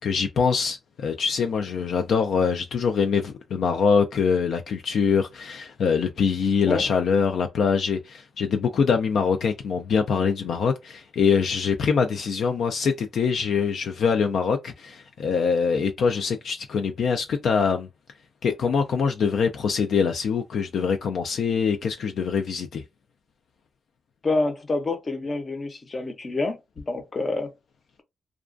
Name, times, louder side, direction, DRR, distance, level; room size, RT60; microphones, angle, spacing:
voice 1, 0.0-17.9 18.4-22.8, left 6 dB, 70° left, 0.3 m, -24 dB
voice 2, 24.2-26.6 26.9-27.5, left 2 dB, 35° left, 0.6 m, -27 dB
2.3 x 2.2 x 2.4 m
cardioid pair, 90°, 0 cm